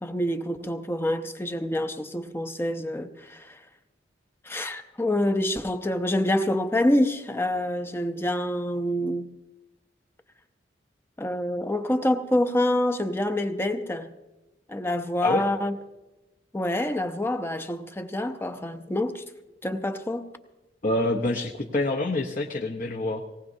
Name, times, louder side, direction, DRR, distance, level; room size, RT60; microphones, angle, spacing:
voice 1, 0.0-3.6 4.4-9.3 11.2-14.1 14.7-15.7 16.5-19.2 19.6-20.3, left 1 dB, 15° left, 0.6 m, -26 dB
voice 2, 20.8-23.2, left 2 dB, 45° left, 0.8 m, -26 dB
19.0 x 18.5 x 2.7 m
head